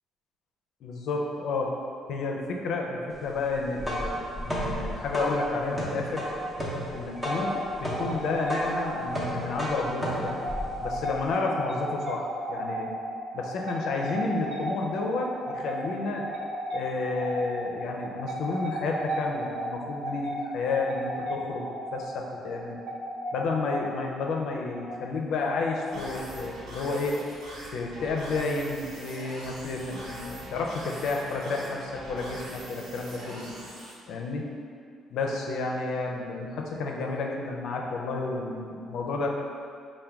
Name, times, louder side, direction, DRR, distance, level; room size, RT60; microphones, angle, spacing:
voice 1, 0.8-1.7 2.1-6.2 6.9-10.4 10.8-12.9 13.3-16.3 16.7-22.8 23.3-27.2 27.7-33.5 34.1-34.5 35.1-39.3, left 3 dB, 70° left, 0 dB, 0.5 m, -31 dB
sound 1, 3.5-11.3, equal, 5° right, 0.7 m, -33 dB
sound 2, 6.9-26.3, equal, 60° right, 0.7 m, -35 dB
sound 3, 25.9-33.9, equal, 80° right, 1.0 m, -42 dB
4.4 x 2.2 x 3.4 m, 2.4 s
cardioid pair, 110°, 0 cm